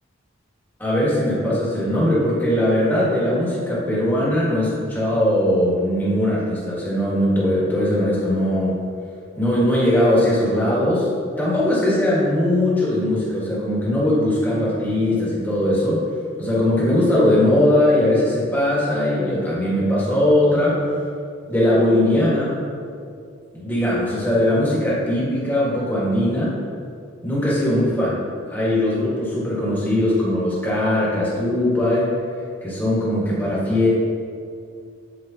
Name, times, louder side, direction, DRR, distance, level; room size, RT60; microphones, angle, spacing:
voice 1, 0.8-8.8 9.4-11.1 11.4-16.0 16.4-20.8 21.5-22.6 23.5-26.6 27.2-28.1 28.5-32.1 32.6-33.9, left 1 dB, 10° left, -8 dB, 1.5 m, -20 dB
8.4 x 4.7 x 2.8 m, 2.4 s
head